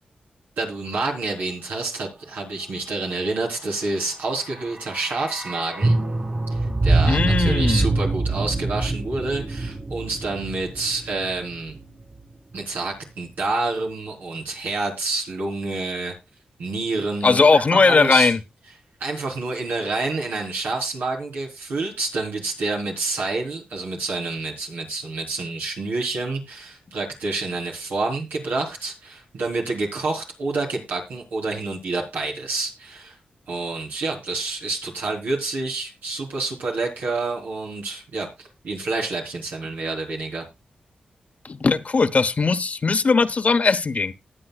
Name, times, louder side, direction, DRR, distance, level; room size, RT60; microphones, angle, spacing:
voice 1, 0.6-6.0 6.5-11.8 12.5-16.1 16.6-18.3 19.0-33.2 33.5-40.4, right 3 dB, 90° right, 3.9 m, -28 dB
sound 1, 4.1-12.3 12.5-12.6, right 2 dB, 35° right, 2.1 m, -25 dB
voice 2, 7.1-7.9 17.2-18.4 41.4-44.1, left 4 dB, 50° left, 1.0 m, -19 dB
20.0 x 7.7 x 2.4 m
cardioid pair, 60°, 3 cm